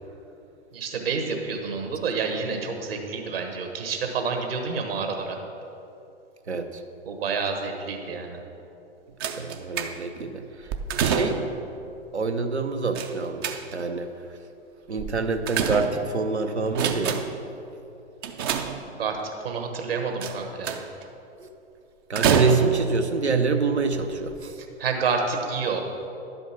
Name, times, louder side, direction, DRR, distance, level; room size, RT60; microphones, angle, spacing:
voice 1, 0.7-5.4 7.0-8.4 19.0-19.2 19.4-20.8 24.6-25.8, right 5 dB, 60° right, 3 dB, 1.4 m, -29 dB
voice 2, 6.5-6.8 9.4-10.7 11.0-11.4 12.1-13.5 13.7-14.1 14.9-17.2 21.4-21.5 22.1-24.6, right 4 dB, 80° right, 7 dB, 0.8 m, -26 dB
sound 1, 9.2-10.2 10.7-11.6 13.0-14.0 15.0-16.3 16.7-17.5 18.2-19.2 20.2-21.0 22.2-23.0 23.8-23.9 24.3-24.4, right 7 dB, 25° right, 0.4 m, -27 dB
11.0 x 5.3 x 6.0 m, 2.8 s
figure-of-eight pair, 105°, 33 cm